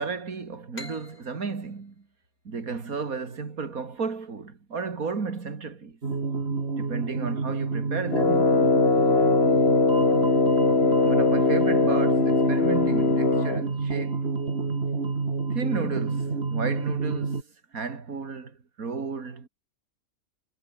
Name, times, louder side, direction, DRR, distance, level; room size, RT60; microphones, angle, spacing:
voice 1, 0.0-2.1 2.5-6.0 6.8-8.7 11.0-14.3 15.5-19.5, right 5 dB, 70° right, 3.0 m, -33 dB
sound 1, 0.7-4.2, left 2 dB, 80° left, 7.9 m, -47 dB
sound 2, 6.0-17.4, right 4 dB, 45° right, 2.4 m, -29 dB
Brass instrument, 8.1-13.7, left 4 dB, 45° left, 2.4 m, -21 dB
omnidirectional pair, 1.5 m